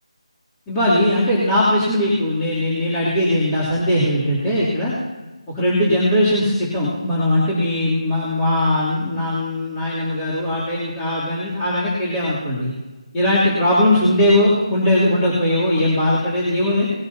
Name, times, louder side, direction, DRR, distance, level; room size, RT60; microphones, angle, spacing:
voice 1, 0.7-4.9 5.5-12.7 13.1-16.8, left 1 dB, 15° left, -10 dB, 3.0 m, -19 dB
20.0 x 13.5 x 2.8 m, 1.2 s
figure-of-eight pair, 160°, 3 cm